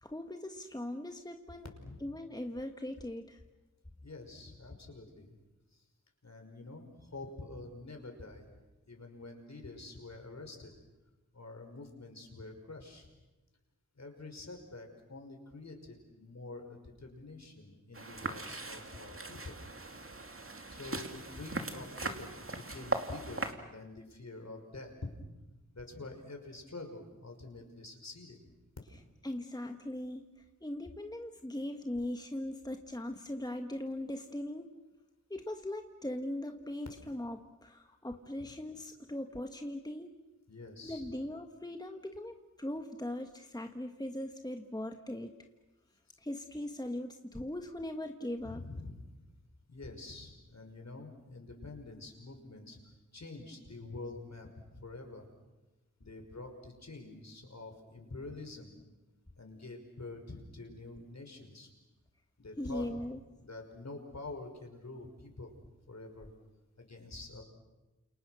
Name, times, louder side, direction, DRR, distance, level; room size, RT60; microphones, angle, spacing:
voice 1, 0.0-1.7 2.0-3.4 29.2-30.2 30.6-34.8 35.3-40.1 40.8-45.3 46.2-48.6 62.6-63.2, left 1 dB, 10° left, 5 dB, 1.6 m, -40 dB
voice 2, 4.0-5.3 6.2-8.5 8.9-10.7 11.3-13.1 14.0-19.6 20.7-24.9 25.7-28.4 40.5-41.0 48.4-49.1 49.7-52.8 53.1-55.2 56.0-58.7 59.4-61.7 62.4-63.0 63.4-65.5 65.9-66.3 66.8-67.4, left 2 dB, 55° left, 4 dB, 5.6 m, -47 dB
sound 1, 17.9-23.5, right 2 dB, 40° right, 2.5 m, -39 dB
29.5 x 28.5 x 6.4 m, 1.1 s
cardioid pair, 55°, 32 cm